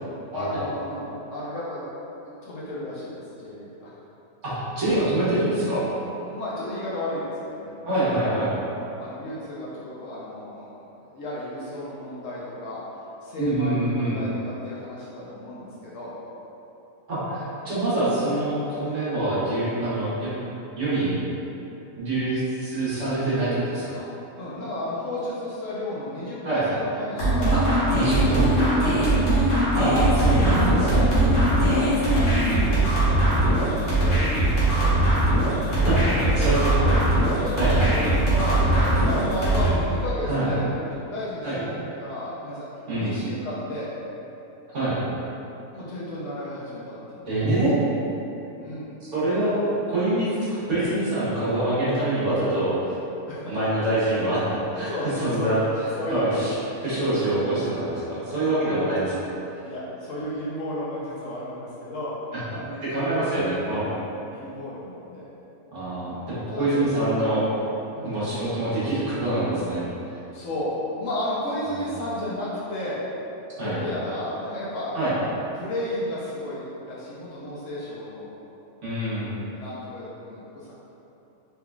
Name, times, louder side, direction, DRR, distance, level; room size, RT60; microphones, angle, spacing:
voice 1, 0.3-1.8 2.4-3.9 6.2-8.4 8.7-12.8 13.2-16.1 24.4-29.8 30.9-31.1 31.4-34.9 35.8-36.9 37.1-42.7 43.0-43.9 45.7-47.3 48.6-48.9 53.3-53.6 54.5-55.5 55.9-56.5 59.6-62.1 62.5-63.6 63.9-65.3 66.0-66.9 67.9-68.2 70.3-73.0 73.5-75.0 75.5-78.3 79.5-80.7, left 1 dB, 65° left, -8 dB, 0.9 m, -33 dB
voice 2, 4.4-5.8 7.8-8.5 13.4-14.2 17.1-20.3 20.8-21.1 21.9-24.1 26.4-26.7 27.5-27.6 27.9-28.5 29.7-31.1 35.7-36.9 37.6-37.9 40.3-40.5 41.4-41.6 42.9-43.1 44.7-45.0 47.3-47.7 49.1-49.6 49.9-52.7 53.5-54.4 54.7-55.6 56.1-56.5 56.8-59.1 62.3-62.4 62.8-63.9 65.7-67.4 68.0-69.8 71.7-71.9 73.6-73.8 74.9-75.1 78.8-79.3, right 1 dB, 55° right, -11 dB, 1.3 m, -25 dB
sound 1, 27.2-39.7, right 1 dB, 40° left, 1.1 m, -20 dB
3.5 x 3.2 x 2.3 m, 2.9 s
omnidirectional pair, 1.6 m